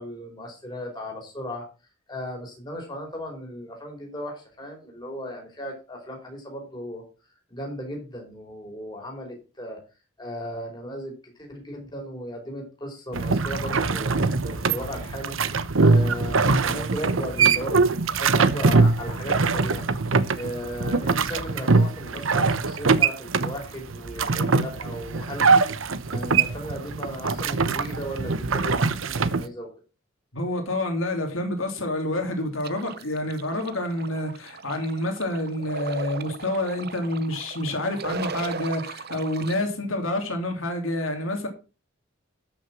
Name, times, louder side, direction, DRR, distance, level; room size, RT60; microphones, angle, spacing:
voice 1, 0.0-1.6 2.1-7.0 7.5-9.8 10.2-19.9 20.3-25.7 26.1-29.7, equal, 20° left, 4.9 m, -36 dB
sound 1, 13.1-29.5, right 4 dB, 80° right, 0.9 m, -22 dB
voice 2, 30.3-41.5, left 1 dB, 80° left, 2.8 m, -28 dB
sound 2, 32.6-39.6, right 4 dB, 50° right, 0.7 m, -37 dB
13.5 x 6.4 x 6.1 m
head